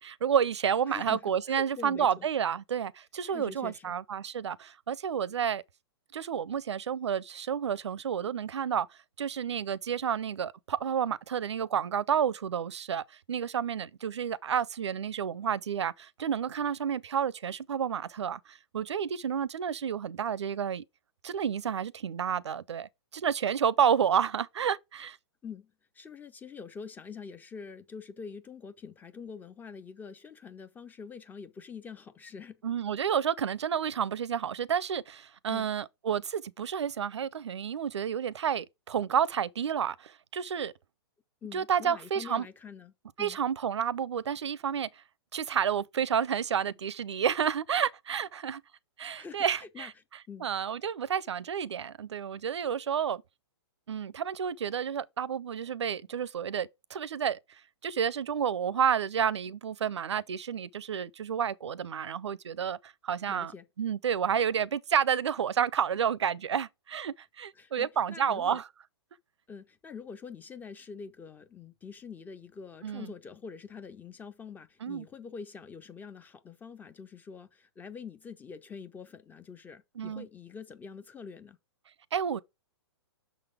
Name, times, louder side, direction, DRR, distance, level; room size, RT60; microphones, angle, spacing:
voice 1, 0.0-5.6 6.1-8.9 9.2-20.8 21.2-25.2 32.6-40.7 41.5-42.5 43.2-44.9 45.3-48.6 49.0-49.9 50.4-53.2 53.9-57.4 57.8-63.5 63.8-68.6 72.8-73.1 74.8-75.1 80.0-80.3 82.1-82.4, right 8 dB, 90° right, 0.5 m, -30 dB
voice 2, 0.9-2.3 3.3-3.9 25.4-32.6 35.5-35.7 41.4-43.4 49.2-49.9 50.3-50.5 63.3-63.7 67.5-68.6 69.5-81.6, left 6 dB, 10° left, 0.5 m, -45 dB
6.4 x 4.0 x 4.9 m
hypercardioid pair, 135°, 14 cm